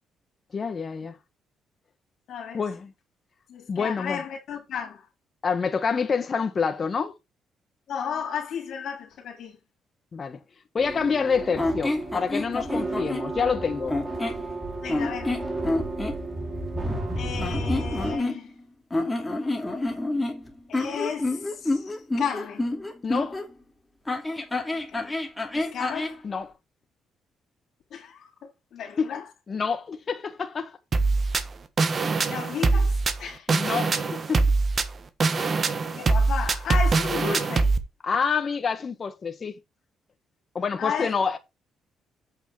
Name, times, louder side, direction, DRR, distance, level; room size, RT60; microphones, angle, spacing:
voice 1, 0.5-1.2 2.5-2.9 3.7-4.2 5.4-7.1 10.1-10.4 10.7-14.0 23.0-23.4 26.2-26.5 29.0-29.1 29.5-30.8 33.5-34.5 35.4-35.6 38.0-39.5 40.5-41.4, left 5 dB, 40° left, 1.5 m, -27 dB
voice 2, 2.3-2.6 3.5-5.0 7.9-9.6 14.8-15.4 17.2-18.5 20.7-22.7 24.9-25.1 25.5-26.2 27.9-29.2 32.2-32.9 33.2-33.5 35.9-37.7 40.8-41.1, left 7 dB, 70° left, 3.6 m, -33 dB
sound 1, 10.8-18.2, right 2 dB, 20° right, 2.5 m, -32 dB
sound 2, 11.6-13.3 13.9-14.5 14.9-16.2 17.4-18.6 18.9-23.5 24.1-26.2, left 2 dB, 15° left, 2.7 m, -28 dB
sound 3, 30.9-37.8, right 3 dB, 40° right, 1.3 m, -23 dB
8.4 x 5.6 x 4.7 m
cardioid pair, 90°, 0 cm